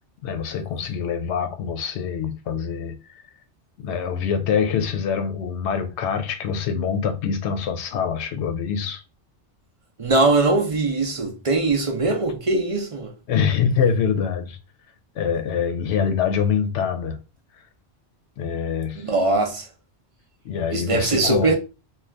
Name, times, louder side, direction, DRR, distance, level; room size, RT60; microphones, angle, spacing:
voice 1, 0.2-3.2 3.8-9.0 13.3-14.6 15.2-17.2 18.4-19.1 20.4-21.6, left 7 dB, 75° left, 0.9 m, -25 dB
voice 2, 10.0-13.1 19.0-19.6 20.7-21.6, right 3 dB, 40° right, 0.5 m, -21 dB
2.6 x 2.3 x 3.2 m
omnidirectional pair, 1.2 m